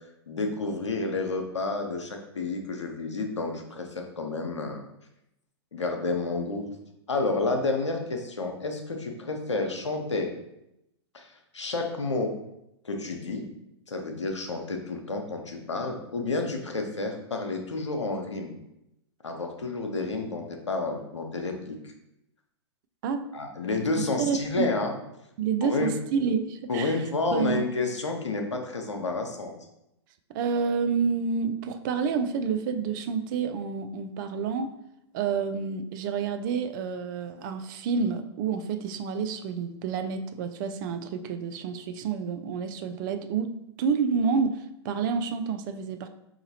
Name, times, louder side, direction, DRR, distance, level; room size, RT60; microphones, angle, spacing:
voice 1, 0.3-4.8 5.7-6.6 7.1-10.3 11.1-12.3 12.8-13.5 13.9-18.5 19.2-21.8 23.3-24.9 25.6-25.9 26.7-29.5, left 3 dB, 90° left, 3 dB, 0.7 m, -30 dB
voice 2, 24.0-24.7 25.4-27.0 27.3-27.7 30.3-34.7 35.1-46.1, right 5 dB, 45° right, 9 dB, 0.4 m, -29 dB
4.7 x 2.9 x 2.7 m, 0.83 s
hypercardioid pair, 110°, 15 cm